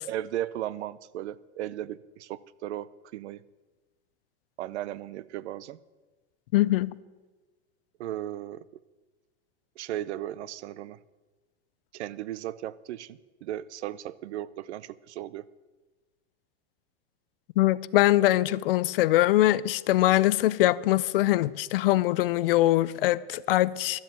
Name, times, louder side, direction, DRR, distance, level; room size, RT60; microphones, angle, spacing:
voice 1, 0.0-3.4 4.6-5.8 8.0-8.7 9.8-11.0 11.9-15.4, right 12 dB, 75° right, 0.7 m, -36 dB
voice 2, 6.5-6.9 17.6-24.0, left 15 dB, 55° left, 0.5 m, -22 dB
13.0 x 7.3 x 8.9 m
supercardioid pair, 170°, 34 cm